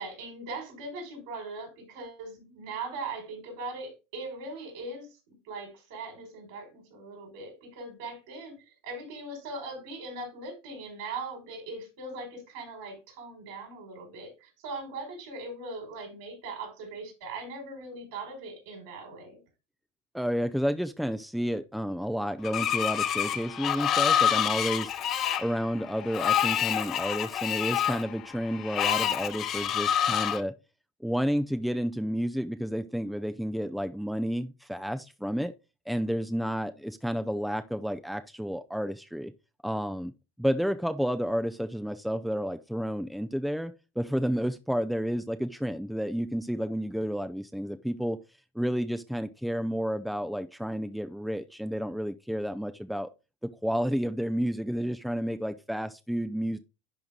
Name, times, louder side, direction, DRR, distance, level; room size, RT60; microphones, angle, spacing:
voice 1, 0.0-5.2 5.4-19.4, right 3 dB, 65° right, 5.3 m, -40 dB
voice 2, 20.1-24.9 25.4-30.5 31.0-35.5 35.9-39.3 39.6-40.1 40.4-48.2 48.5-53.1 53.6-56.6, equal, ahead, 0.6 m, -31 dB
Screech, 22.4-30.4, left 9 dB, 45° left, 0.9 m, -27 dB
11.0 x 4.6 x 3.7 m
hypercardioid pair, 90°, 0 cm